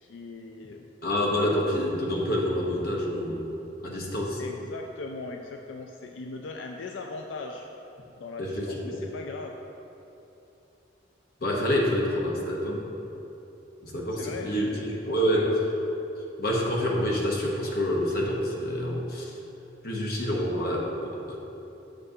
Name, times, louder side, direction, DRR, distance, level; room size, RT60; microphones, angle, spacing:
voice 1, 0.0-0.9 4.4-7.8 8.2-9.6 14.1-15.7, left 3 dB, 90° left, 2 dB, 0.4 m, -39 dB
voice 2, 1.0-3.5 3.8-4.4 8.4-9.0 11.4-12.9 13.8-15.5 15.9-16.0 16.4-19.3 19.8-21.4, equal, 55° left, -2 dB, 0.9 m, -27 dB
7.8 x 6.4 x 2.7 m, 2.9 s
head